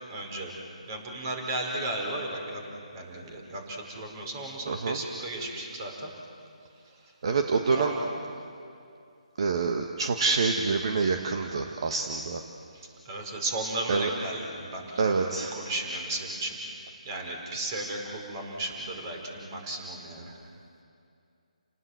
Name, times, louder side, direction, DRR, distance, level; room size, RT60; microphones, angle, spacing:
voice 1, 0.1-0.5 0.9-2.6 2.9-6.1 7.7-8.1 13.0-16.7 17.0-20.3, right 1 dB, 30° right, 1 dB, 5.1 m, -34 dB
voice 2, 4.7-5.0 7.2-7.9 9.4-12.4 13.9-14.1 15.0-15.5, right 4 dB, 50° right, 4 dB, 1.6 m, -26 dB
30.0 x 19.0 x 8.0 m, 2.5 s
figure-of-eight pair, 155°, 4 cm